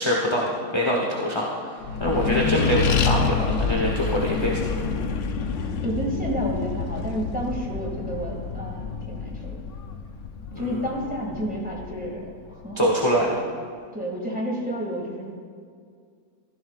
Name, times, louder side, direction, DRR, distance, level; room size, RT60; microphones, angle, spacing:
voice 1, 0.0-1.7 2.0-4.8 10.5-10.9 12.8-13.3, equal, 20° left, -2 dB, 1.0 m, -24 dB
Accelerating revving vroom, 1.8-12.7, left 5 dB, 60° left, 1.0 m, -28 dB
voice 2, 5.8-9.6 10.6-12.2 12.5-13.2 13.9-15.3, equal, 5° right, -3 dB, 2.2 m, -30 dB
15.5 x 14.0 x 2.5 m, 2.2 s
omnidirectional pair, 1.5 m